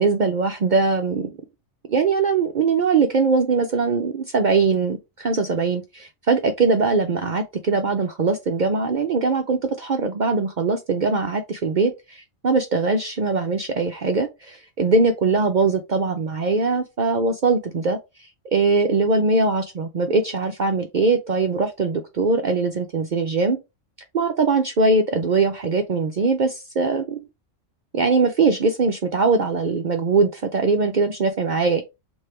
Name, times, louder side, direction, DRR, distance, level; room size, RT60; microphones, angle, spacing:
voice 1, 0.0-1.3 1.9-18.0 18.5-23.6 24.1-27.2 27.9-31.8, right 4 dB, 55° right, 0.5 m, -21 dB
3.3 x 2.6 x 4.3 m
omnidirectional pair, 1.3 m